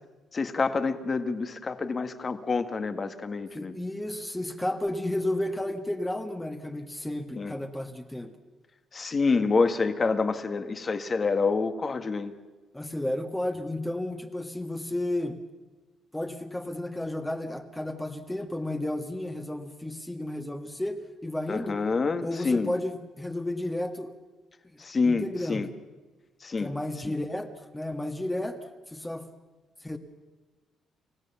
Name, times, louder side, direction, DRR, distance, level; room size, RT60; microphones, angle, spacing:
voice 1, 0.3-3.7 7.3-7.5 8.9-12.3 21.5-22.7 24.8-25.7 26.4-26.7 27.0-27.2, left 4 dB, 35° left, 9 dB, 1.7 m, -27 dB
voice 2, 3.5-8.3 12.7-15.4 16.1-21.8 22.2-24.1 24.6-24.8 25.0-25.7 26.6-28.6 28.9-29.3 29.8-30.0, left 1 dB, 10° left, 5 dB, 1.6 m, -32 dB
29.0 x 15.0 x 7.1 m, 1.3 s
cardioid pair, 90°, 0 cm